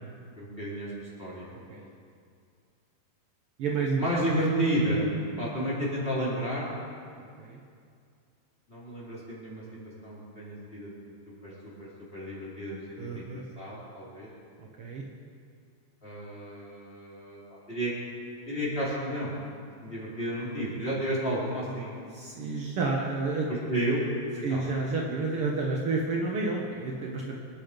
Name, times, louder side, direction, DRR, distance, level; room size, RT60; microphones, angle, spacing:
voice 1, 0.4-0.9 1.2-1.5 4.0-5.1 5.4-6.7 8.7-9.6 10.0-10.9 11.4-11.5 11.8-14.3 16.0-17.4 17.7-17.9 18.5-19.3 19.8-22.1 23.5-24.0 24.3-24.6, right 1 dB, 15° left, -7 dB, 4.3 m, -31 dB
voice 2, 1.5-1.9 3.6-4.0 7.4-7.6 13.0-13.4 14.6-15.0 22.1-23.5 24.4-27.4, right 3 dB, 80° right, -2 dB, 1.2 m, -30 dB
25.5 x 10.0 x 5.3 m, 2.3 s
omnidirectional pair, 4.7 m